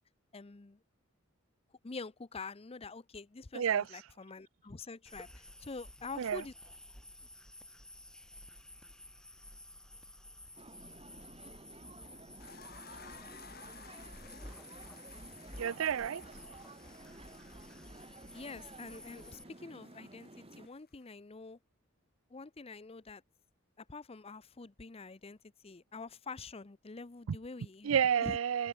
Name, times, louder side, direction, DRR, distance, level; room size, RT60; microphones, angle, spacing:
voice 1, 0.3-0.8 1.8-6.5 18.3-21.6 22.3-23.2 23.8-25.4 25.6-28.4, left 4 dB, 30° left, 0.6 m, -46 dB
voice 2, 3.5-3.8 6.2-6.4 15.6-16.5 27.3-27.4 27.8-28.7, right 8 dB, 80° right, 0.4 m, -30 dB
sound 1, 5.0-19.4, left 1 dB, 5° left, 3.4 m, -53 dB
sound 2, 10.6-20.7, right 2 dB, 30° right, 2.0 m, -53 dB
sound 3, 12.4-21.1, left 7 dB, 50° left, 6.9 m, -58 dB
head